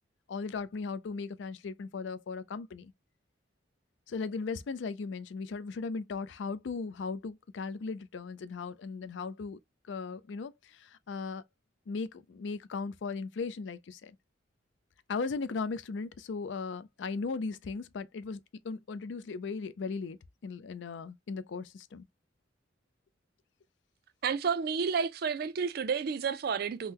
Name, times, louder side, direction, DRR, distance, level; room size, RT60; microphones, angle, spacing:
voice 1, 0.3-2.9 4.1-9.6 9.9-11.4 11.9-14.2 15.1-20.2 20.4-22.1, left 4 dB, 75° left, 0.4 m, -37 dB
voice 2, 24.2-26.9, right 6 dB, 55° right, 0.4 m, -31 dB
3.7 x 2.1 x 2.8 m
head